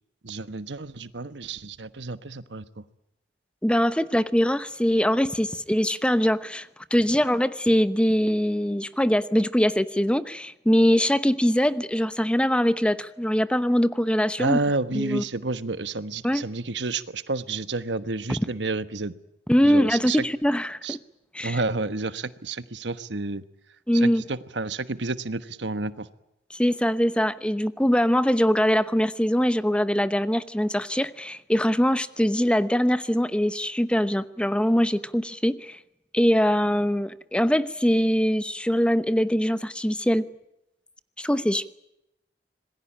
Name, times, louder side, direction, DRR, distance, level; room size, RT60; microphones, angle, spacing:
voice 1, 0.2-2.8 14.4-19.1 19.6-20.2 20.8-21.0 21.4-23.4 23.9-26.1, right 3 dB, 90° right, 13 dB, 1.3 m, -30 dB
voice 2, 3.6-14.6 14.9-15.2 16.2-16.4 19.5-21.0 21.3-21.6 23.9-24.2 26.5-35.8 36.1-40.3 41.2-41.7, equal, 5° left, 13 dB, 0.9 m, -22 dB
26.5 x 20.0 x 8.6 m, 0.84 s
head